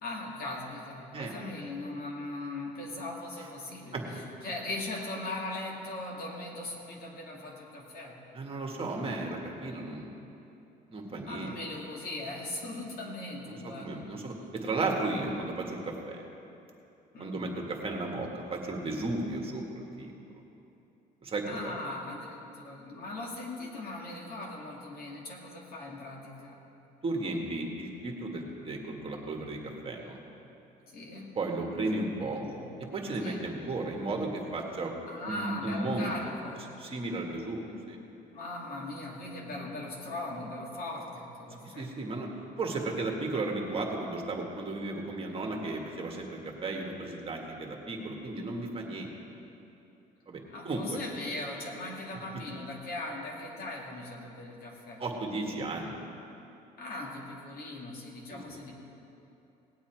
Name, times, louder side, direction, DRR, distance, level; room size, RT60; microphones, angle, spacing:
voice 1, 0.0-4.0 4.4-8.1 11.3-14.1 17.1-17.5 21.4-26.6 30.9-31.4 32.4-32.7 33.2-33.5 35.1-36.7 38.3-41.9 50.5-55.0 56.8-58.7, left 2 dB, 60° left, -2 dB, 2.6 m, -39 dB
voice 2, 8.3-10.1 10.9-11.5 13.4-16.3 17.2-20.1 21.2-21.7 27.0-30.2 31.4-32.4 32.9-34.9 35.2-36.1 36.8-38.0 41.6-42.3 42.6-49.1 49.4-49.5 50.3-51.0 55.0-56.0 58.3-58.4, right 2 dB, 35° right, 0 dB, 1.8 m, -34 dB
18.5 x 8.3 x 4.6 m, 2.8 s
cardioid pair, 110°, 17 cm